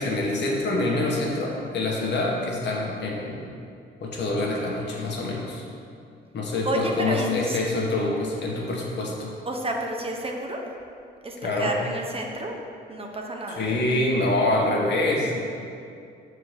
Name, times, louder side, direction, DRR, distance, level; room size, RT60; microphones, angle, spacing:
voice 1, 0.0-3.5 4.0-5.6 6.3-9.3 11.4-11.7 13.6-15.4, left 2 dB, 60° left, -2 dB, 1.7 m, -26 dB
voice 2, 6.6-7.6 9.4-10.6 11.2-12.6 12.9-14.0, right 1 dB, 30° right, 1 dB, 1.0 m, -31 dB
6.8 x 4.8 x 6.8 m, 2.4 s
cardioid pair, 90°, 20 cm